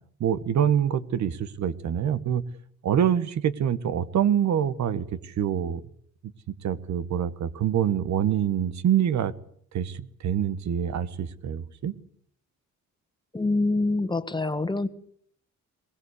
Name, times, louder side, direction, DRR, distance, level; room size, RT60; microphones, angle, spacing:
voice 1, 0.2-2.4 2.8-5.8 6.5-9.3 9.7-11.9, right 9 dB, 65° right, 14 dB, 1.5 m, -25 dB
voice 2, 13.3-14.9, left 2 dB, 15° left, 10 dB, 1.7 m, -25 dB
22.0 x 20.0 x 8.3 m, 0.64 s
cardioid pair, 90°, 30 cm